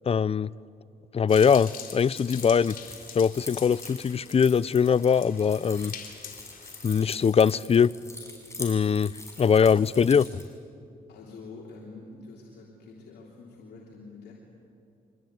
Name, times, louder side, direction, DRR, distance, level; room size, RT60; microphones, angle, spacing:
voice 1, 0.1-0.5 1.1-2.8 3.1-5.9 6.8-7.9 8.6-9.1 9.4-10.4, left 6 dB, 35° left, 21 dB, 0.5 m, -22 dB
sound 1, 1.3-7.0, left 6 dB, 55° left, 3.6 m, -44 dB
Keys jangling, 2.3-10.4, left 2 dB, 15° left, 6.8 m, -44 dB
voice 2, 11.1-14.3, left 3 dB, 75° left, -2 dB, 3.3 m, -46 dB
25.0 x 20.0 x 9.4 m, 2.5 s
supercardioid pair, 65°, 17 cm